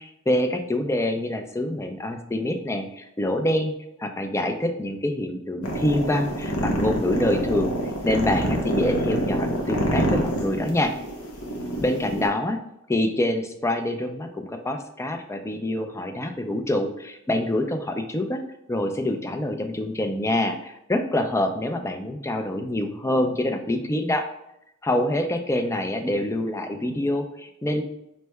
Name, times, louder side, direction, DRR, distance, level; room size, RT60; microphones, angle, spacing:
voice 1, 0.0-3.7 4.0-7.7 8.0-10.9 11.8-12.6 12.9-18.4 18.7-24.3 24.8-27.8, left 1 dB, 15° left, 5 dB, 0.4 m, -26 dB
sound 1, 5.6-12.3, equal, 85° left, 0.8 m, -26 dB
5.4 x 3.1 x 2.2 m, 0.83 s
head